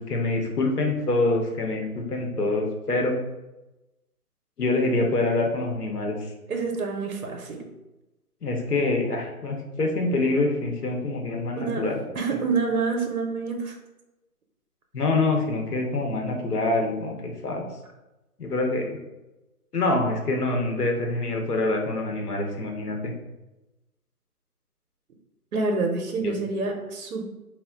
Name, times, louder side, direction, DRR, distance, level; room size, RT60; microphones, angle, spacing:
voice 1, 0.0-3.1 4.6-6.3 8.4-12.0 14.9-17.6 18.4-19.0 19.7-23.1 26.2-26.3, left 2 dB, 80° left, 2 dB, 0.8 m, -25 dB
voice 2, 6.5-7.6 11.6-11.9 12.1-13.8 25.5-27.2, right 4 dB, 65° right, 3 dB, 0.6 m, -27 dB
2.3 x 2.1 x 3.6 m, 1.0 s
figure-of-eight pair, 155°, 46 cm